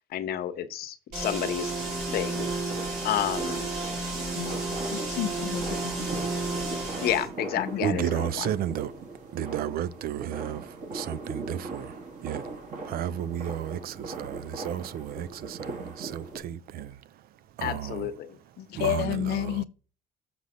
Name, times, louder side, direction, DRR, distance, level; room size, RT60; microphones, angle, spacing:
voice 1, 0.1-1.7 2.1-2.5 3.0-3.7 7.0-8.5 17.6-18.4, left 11 dB, 65° left, 1.0 m, -30 dB
sound 1, 1.1-7.3, right 2 dB, 85° right, 3.4 m, -32 dB
sound 2, 1.6-16.4, right 3 dB, 45° right, 1.9 m, -40 dB
voice 2, 4.9-6.1 7.5-8.1 18.6-19.6, left 12 dB, 80° left, 0.7 m, -31 dB
voice 3, 7.8-12.5 12.8-18.1 18.7-19.6, right 10 dB, 65° right, 0.5 m, -33 dB
6.9 x 4.0 x 6.3 m
cardioid pair, 110°, 17 cm